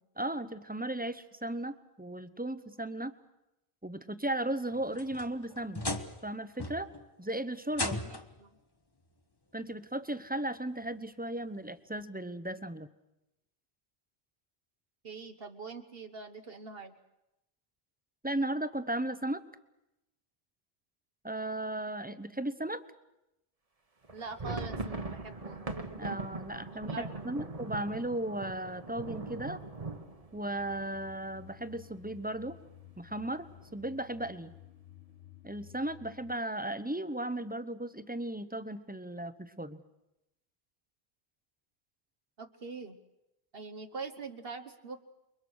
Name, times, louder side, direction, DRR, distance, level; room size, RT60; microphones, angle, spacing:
voice 1, 0.2-3.1 3.8-5.9 6.2-6.9 7.2-8.0 9.5-12.9 18.2-19.4 21.2-22.8 26.0-29.6 30.3-32.6 33.0-33.5 33.7-34.5 35.4-39.8, right 1 dB, 10° right, 13 dB, 0.9 m, -36 dB
sound 1, 4.7-6.3 6.6-7.1 7.7-8.4 9.6-9.7 10.3-10.4 12.0-12.1, left 2 dB, 25° left, 1.2 m, -37 dB
voice 2, 7.9-8.5 15.0-16.9 24.1-25.8 26.7-27.4 42.4-43.0 43.5-45.0, right 4 dB, 65° right, 7 dB, 1.4 m, -44 dB
sound 2, 24.0-31.8 32.1-32.2 32.5-32.7 33.2-33.7, right 3 dB, 35° right, 1.4 m, -41 dB
sound 3, 30.5-36.4, left 13 dB, 65° left, 1.4 m, -54 dB
28.5 x 23.0 x 6.4 m, 0.91 s
omnidirectional pair, 1.1 m